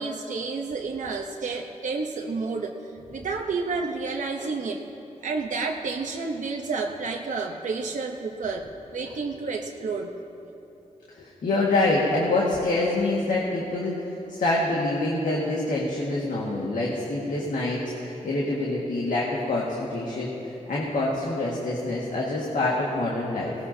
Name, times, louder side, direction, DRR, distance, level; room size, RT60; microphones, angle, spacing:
voice 1, 0.0-4.8 5.2-10.1, right 4 dB, 75° right, 1 dB, 0.9 m, -30 dB
voice 2, 11.1-14.0 14.3-20.3 20.7-23.6, left 2 dB, 85° left, -4 dB, 1.8 m, -26 dB
20.5 x 18.5 x 2.8 m, 2.9 s
wide cardioid pair, 120°, 13 cm